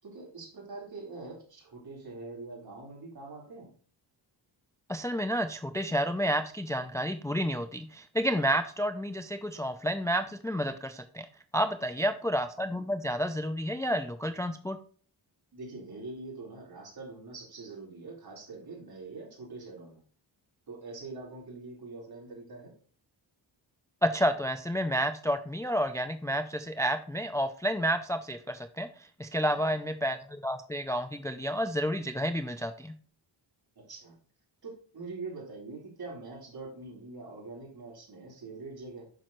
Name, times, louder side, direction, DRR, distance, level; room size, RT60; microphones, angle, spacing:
voice 1, 0.0-3.7 15.5-20.0 20.7-22.8 29.4-29.7 33.8-34.2 34.6-39.0, right 3 dB, 55° right, -2 dB, 3.9 m, -44 dB
voice 2, 4.9-11.3 11.5-14.8 24.0-32.9, equal, 5° left, 8 dB, 0.5 m, -30 dB
8.8 x 6.2 x 3.1 m, 0.44 s
wide cardioid pair, 110°, 45 cm